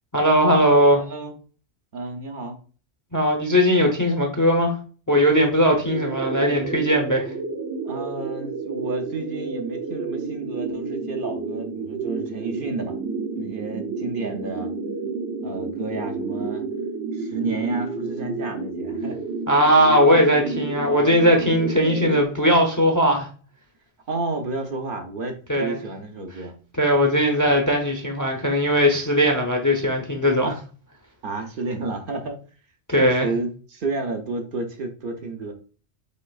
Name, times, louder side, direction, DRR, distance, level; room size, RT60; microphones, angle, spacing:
voice 1, 0.1-1.0 3.1-4.7 5.1-7.3 19.5-23.3 25.5-25.8 26.8-30.5 32.9-33.3, equal, 25° left, 0.5 m, -19 dB
voice 2, 0.9-1.3 1.9-2.6 7.8-13.0 13.4-14.7 15.4-16.6 17.1-19.2 24.1-26.5 30.4-30.6 31.2-32.4 32.9-35.5, right 3 dB, 55° right, 0.8 m, -31 dB
sound 1, 5.8-22.2, right 4 dB, 85° right, 0.9 m, -30 dB
5.3 x 4.0 x 2.3 m
omnidirectional pair, 1.1 m